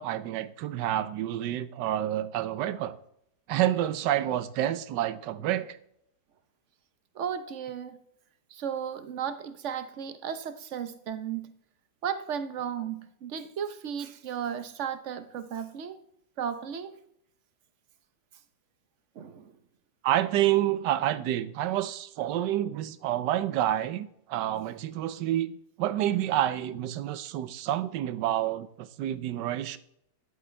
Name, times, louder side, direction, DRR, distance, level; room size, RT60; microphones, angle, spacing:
voice 1, 0.0-3.0 3.5-5.8 20.0-25.5 25.8-29.8, right 12 dB, 85° right, 1.3 m, -28 dB
voice 2, 7.1-8.0 8.5-11.5 12.0-16.0 16.4-16.9 19.2-19.5, right 8 dB, 50° right, 1.0 m, -35 dB
13.5 x 10.5 x 3.3 m
omnidirectional pair, 1.8 m